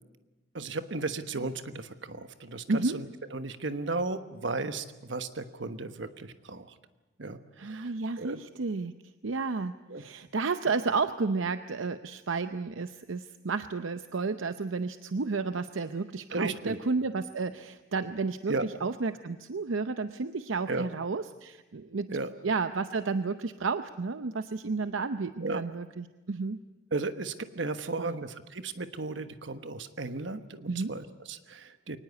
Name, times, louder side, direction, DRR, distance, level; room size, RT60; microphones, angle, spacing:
voice 1, 0.5-6.7 7.2-8.4 9.9-10.0 16.3-16.8 18.5-18.7 20.7-20.9 22.1-22.3 25.4-25.6 26.9-32.0, right 3 dB, 65° right, 10 dB, 1.3 m, -35 dB
voice 2, 2.7-3.0 7.6-8.9 9.2-18.5 18.8-22.1 22.4-26.6 28.0-28.2 30.7-31.0, right 4 dB, 85° right, 10 dB, 0.7 m, -32 dB
23.5 x 19.0 x 8.3 m, 1.1 s
head